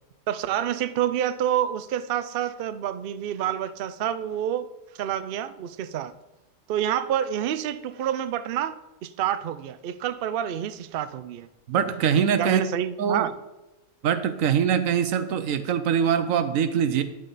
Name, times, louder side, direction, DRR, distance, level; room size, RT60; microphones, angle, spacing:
voice 1, 0.3-4.7 5.0-6.1 6.7-8.7 9.0-11.5 12.4-13.3, right 10 dB, 65° right, 13 dB, 0.6 m, -28 dB
voice 2, 11.7-12.6 13.0-13.3 14.0-17.0, right 8 dB, 80° right, 11 dB, 1.1 m, -23 dB
9.9 x 7.7 x 4.0 m, 0.99 s
omnidirectional pair, 1.4 m